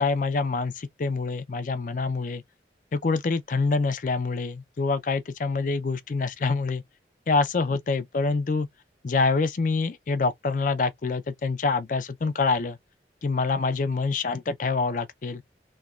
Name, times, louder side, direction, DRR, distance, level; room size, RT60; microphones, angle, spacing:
voice 1, 0.0-2.4 2.9-6.8 7.3-8.7 9.0-12.8 13.2-15.4, left 4 dB, 45° left, 0.4 m, -26 dB
3.1 x 2.2 x 2.3 m
head